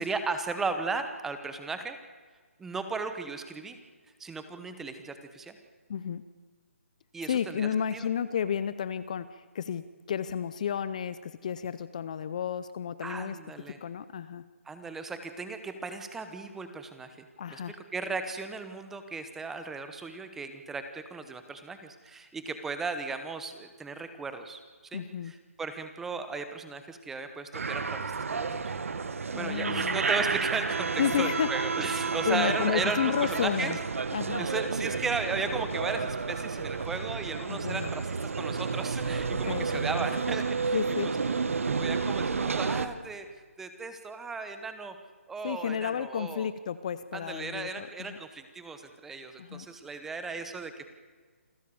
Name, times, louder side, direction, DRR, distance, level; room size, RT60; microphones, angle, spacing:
voice 1, 0.0-2.0 2.6-3.8 4.2-5.6 7.1-8.1 13.0-13.8 14.7-24.6 24.9-28.0 28.3-28.6 29.4-33.7 34.4-40.8 41.8-43.3 43.6-44.9 45.3-46.5 47.1-50.9, right 4 dB, 5° right, 9 dB, 0.9 m, -36 dB
voice 2, 5.9-6.2 7.2-13.4 13.8-14.4 17.4-17.8 24.9-25.3 29.3-30.0 31.0-31.5 32.3-33.8 34.1-34.5 37.5-37.9 39.3-39.9 40.7-41.1 45.4-48.2 49.4-49.7, left 8 dB, 30° left, 14 dB, 0.6 m, -32 dB
sound 1, 27.5-42.9, right 4 dB, 75° right, 1.5 m, -31 dB
27.5 x 15.5 x 7.1 m, 1.5 s
hypercardioid pair, 170°, 7 cm